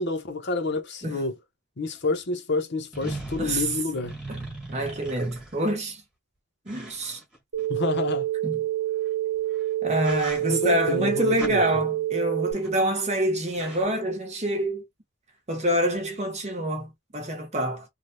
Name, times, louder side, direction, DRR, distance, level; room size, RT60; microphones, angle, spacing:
voice 1, 0.0-1.4 1.8-4.1 7.7-8.3 10.4-11.6, left 3 dB, 55° left, 0.8 m, -28 dB
sound 1, 2.0-2.1 2.9-5.8 6.7-8.0 9.4-9.6 10.0-10.7 11.4-11.6 12.5-12.9 13.2-13.3 13.5-13.8, right 2 dB, 5° right, 1.4 m, -39 dB
voice 2, 3.4-3.7 4.3-4.4 4.7-6.0 6.7-7.2 8.4-8.6 9.8-14.8 15.5-17.8, right 1 dB, 35° right, 1.0 m, -26 dB
sound 2, 7.5-12.5, right 14 dB, 75° right, 0.9 m, -27 dB
3.3 x 2.3 x 2.6 m
head